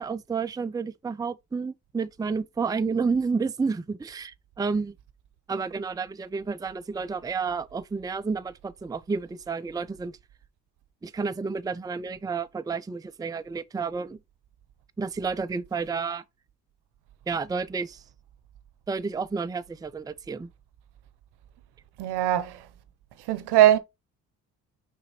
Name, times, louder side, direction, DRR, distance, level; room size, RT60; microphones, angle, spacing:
voice 1, 0.0-5.0 5.5-10.2 11.0-14.2 15.0-16.2 17.3-18.0 18.9-20.5, right 5 dB, 10° right, 0.5 m, -30 dB
voice 2, 22.0-22.6 23.3-23.8, right 12 dB, 70° right, 0.8 m, -20 dB
5.7 x 3.9 x 4.2 m
hypercardioid pair, 50°, 41 cm